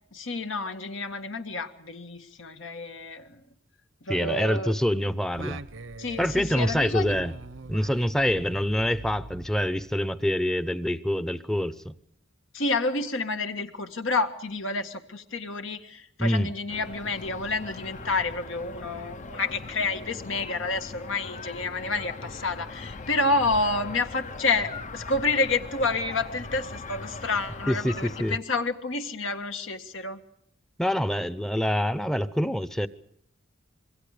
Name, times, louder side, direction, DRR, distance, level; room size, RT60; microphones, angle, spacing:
voice 1, 0.1-3.4 4.0-4.7 6.0-7.1 12.5-30.2, left 3 dB, 75° left, 7 dB, 1.8 m, -29 dB
voice 2, 4.1-5.6 6.2-7.3 7.7-11.9 16.2-16.5 27.7-28.4 30.8-32.9, equal, 5° left, 15 dB, 0.8 m, -26 dB
Singing, 5.3-10.1, right 2 dB, 80° right, 1.0 m, -42 dB
sound 1, 16.7-28.4, left 3 dB, 40° left, 0.8 m, -40 dB
26.5 x 22.5 x 5.1 m, 0.71 s
head